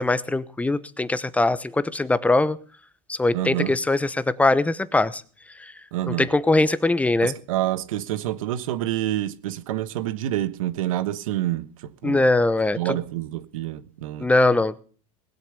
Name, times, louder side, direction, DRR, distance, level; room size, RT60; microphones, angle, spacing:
voice 1, 0.0-2.6 3.1-5.2 5.6-5.7 6.1-7.3 12.0-13.0 14.2-14.8, left 2 dB, 10° left, 0.9 m, -21 dB
voice 2, 3.3-3.7 5.9-6.3 7.2-12.2 12.8-14.3, right 13 dB, 85° right, 1.3 m, -27 dB
20.0 x 8.4 x 6.9 m
supercardioid pair, 120°, 17 cm